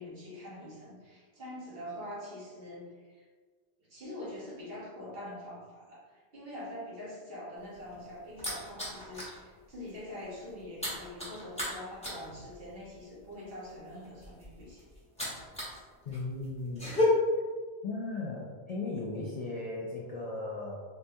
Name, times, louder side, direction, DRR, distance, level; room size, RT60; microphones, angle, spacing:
voice 1, 0.0-3.2 3.9-14.9, left 1 dB, 55° right, -7 dB, 1.2 m, -44 dB
sound 1, 7.6-9.4 9.7-10.0 10.2-15.8 16.1-17.0, left 1 dB, 5° left, 0.9 m, -37 dB
voice 2, 16.0-17.0 17.8-20.8, left 3 dB, 60° left, -3 dB, 0.4 m, -37 dB
3.8 x 2.2 x 2.6 m, 1.5 s
omnidirectional pair, 1.2 m